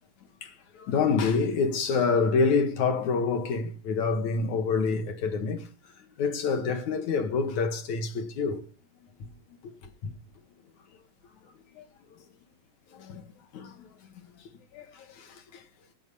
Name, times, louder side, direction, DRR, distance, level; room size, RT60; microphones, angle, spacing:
voice 1, 0.4-5.6 6.2-8.6 10.0-10.1 11.8-11.9 12.9-13.2 13.5-13.9 14.7-15.6, left 4 dB, 60° left, 2.5 m, -27 dB
10.5 x 9.3 x 5.6 m
omnidirectional pair, 4.2 m